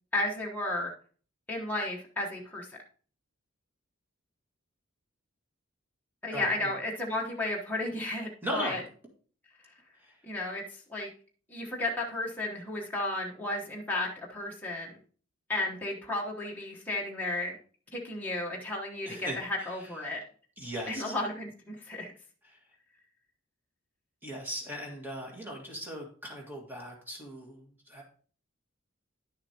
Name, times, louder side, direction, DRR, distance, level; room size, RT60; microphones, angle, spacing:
voice 1, 0.1-0.9 1.5-2.7 6.2-8.3 8.5-8.8 10.2-10.6 10.9-11.1 11.5-15.0 15.5-17.6 17.9-20.2 20.9-22.1, left 2 dB, 10° left, -3 dB, 1.1 m, -33 dB
voice 2, 6.3-6.8 8.4-8.9 10.0-10.1 19.1-19.9 20.6-21.1 22.4-22.6 24.2-28.0, equal, 10° right, -1 dB, 1.8 m, -38 dB
10.5 x 6.7 x 2.9 m, 0.43 s
head